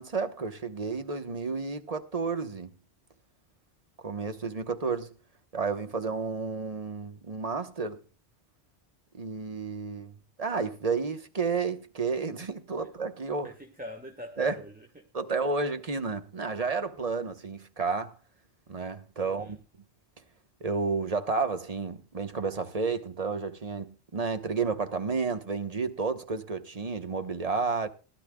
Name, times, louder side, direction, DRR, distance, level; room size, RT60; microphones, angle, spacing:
voice 1, 0.0-2.7 4.0-5.1 5.5-8.0 9.1-10.1 10.4-13.5 14.4-14.6 15.1-18.1 18.7-19.6 20.6-27.9, right 4 dB, 35° right, 1.1 m, -31 dB
voice 2, 13.4-15.1 19.2-19.6, equal, 10° right, 1.2 m, -44 dB
19.0 x 12.0 x 2.3 m
omnidirectional pair, 1.1 m